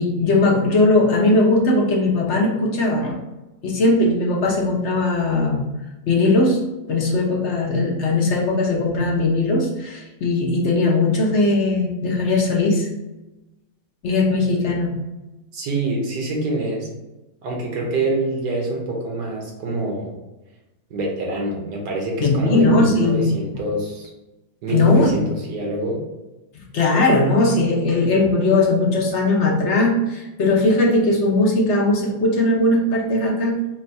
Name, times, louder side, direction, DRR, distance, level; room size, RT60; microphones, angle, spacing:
voice 1, 0.0-3.2 3.6-5.7 6.1-12.9 14.0-15.0 22.2-23.3 24.7-25.1 26.5-33.7, left 2 dB, 55° left, -1 dB, 1.0 m, -19 dB
voice 2, 15.5-16.9 17.4-20.1 20.9-24.1 24.6-26.0, right 2 dB, 75° right, -1 dB, 1.5 m, -25 dB
4.4 x 2.3 x 4.0 m, 1.0 s
omnidirectional pair, 1.7 m